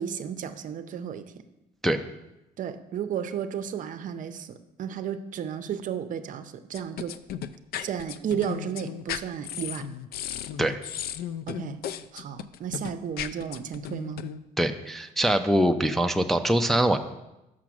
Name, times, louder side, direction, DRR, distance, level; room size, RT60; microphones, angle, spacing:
voice 1, 0.0-1.3 2.6-7.2 7.8-9.9 11.5-11.8 12.1-14.2, right 8 dB, 50° right, 10 dB, 0.6 m, -33 dB
sound 1, 6.7-14.4, left 10 dB, 65° left, 0.4 m, -35 dB
voice 2, 14.6-17.0, right 1 dB, ahead, 5 dB, 0.4 m, -23 dB
6.1 x 6.0 x 6.0 m, 0.95 s
cardioid pair, 110°, 17 cm